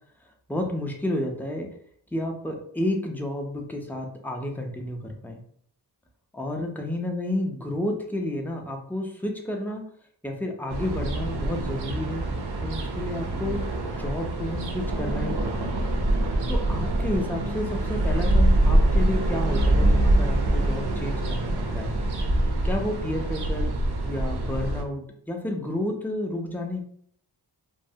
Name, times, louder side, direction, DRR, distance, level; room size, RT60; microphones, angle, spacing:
voice 1, 0.5-1.7 2.1-5.4 6.3-9.8 10.2-12.3 12.6-13.6 14.0-15.7 16.5-21.9 22.6-23.7 24.1-26.8, left 1 dB, 5° left, 1 dB, 0.3 m, -31 dB
sound 1, 10.7-24.8, right 1 dB, 70° right, 0.6 m, -24 dB
3.1 x 2.0 x 2.6 m, 0.63 s
wide cardioid pair, 130°, 42 cm